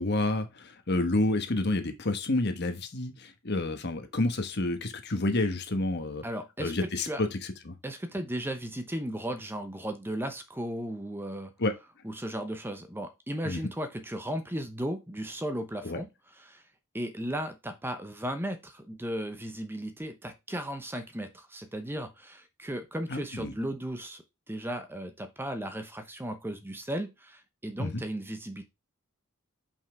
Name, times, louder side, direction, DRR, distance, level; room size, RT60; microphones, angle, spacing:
voice 1, 0.0-6.2 6.6-7.4 7.6-7.7 11.6-11.7 13.4-13.6 15.8-16.0 23.1-23.5 27.8-28.0, left 2 dB, 50° left, 1.2 m, -29 dB
voice 2, 6.2-7.2 7.8-11.5 12.0-16.1 16.4-16.6 16.9-28.6, right 1 dB, 10° right, 0.8 m, -36 dB
5.7 x 5.5 x 4.6 m
head